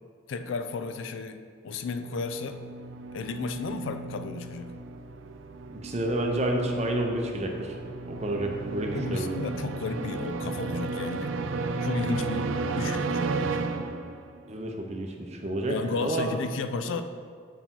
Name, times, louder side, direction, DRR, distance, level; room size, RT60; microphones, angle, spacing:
voice 1, 0.3-2.6 3.1-4.7 8.9-11.4 11.8-13.7 15.7-17.1, left 4 dB, 70° left, 9 dB, 0.4 m, -33 dB
sound 1, 1.8-14.5, right 3 dB, 75° right, 0.4 m, -33 dB
voice 2, 5.7-7.8 8.0-9.4 14.5-16.3 16.8-17.0, right 1 dB, 35° right, 2 dB, 0.6 m, -30 dB
7.0 x 4.8 x 3.7 m, 2.1 s
head